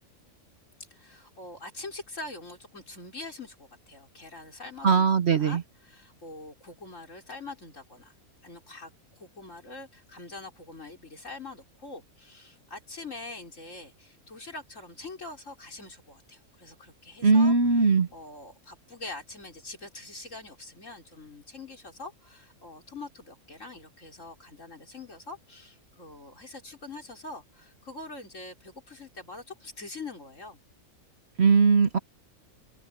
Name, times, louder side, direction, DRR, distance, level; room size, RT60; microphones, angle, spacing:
voice 1, 0.9-8.1 8.4-17.5 17.9-30.6, left 2 dB, 55° left, 4.9 m, -44 dB
voice 2, 4.8-5.6 17.2-18.1 31.4-32.0, right 4 dB, 50° right, 1.2 m, -20 dB
omnidirectional pair, 1.5 m